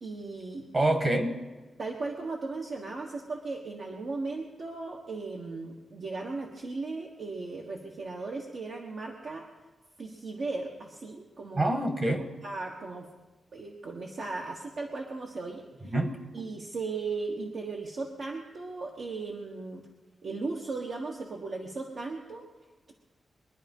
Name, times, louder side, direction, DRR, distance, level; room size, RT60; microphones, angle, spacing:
voice 1, 0.0-0.7 1.8-9.5 10.0-11.8 12.4-13.1 13.5-15.9 16.3-19.9 20.2-22.5, right 3 dB, 55° right, 0 dB, 1.4 m, -37 dB
voice 2, 0.7-1.4 11.5-12.3 15.8-16.2, right 1 dB, 30° right, 6 dB, 1.6 m, -26 dB
23.0 x 10.5 x 5.5 m, 1.3 s
wide cardioid pair, 160°, 0 cm